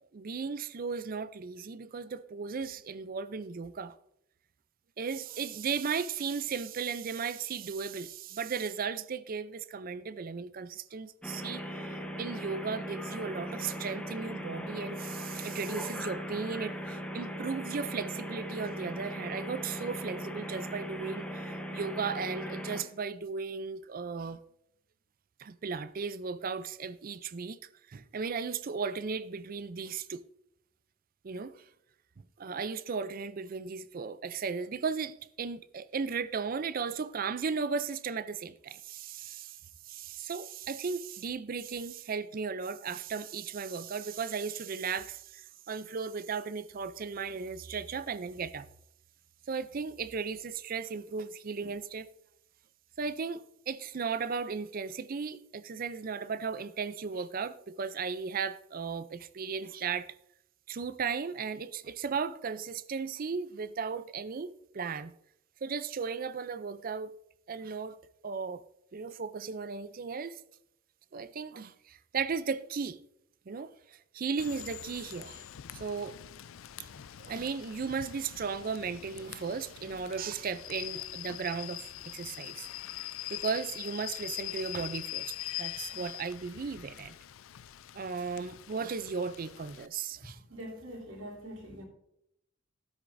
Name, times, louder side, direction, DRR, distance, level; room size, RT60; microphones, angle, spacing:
voice 1, 0.0-3.9 5.0-24.4 25.4-27.6 27.9-30.2 31.2-31.6 32.4-39.6 39.8-48.7 49.5-52.1 53.0-60.1 60.7-65.1 65.6-67.1 67.5-68.0 68.2-68.6 68.9-70.4 71.1-73.0 73.5-75.4 75.7-76.2 77.2-82.7 83.3-87.1 87.9-90.4, right 5 dB, 45° right, 0.4 m, -36 dB
sound 1, 11.2-22.8, equal, 5° left, 0.9 m, -39 dB
Rain / Train, 74.4-89.9, left 13 dB, 80° left, 0.4 m, -43 dB
voice 2, 90.2-91.8, equal, 65° right, 2.9 m, -44 dB
13.5 x 8.1 x 2.6 m
head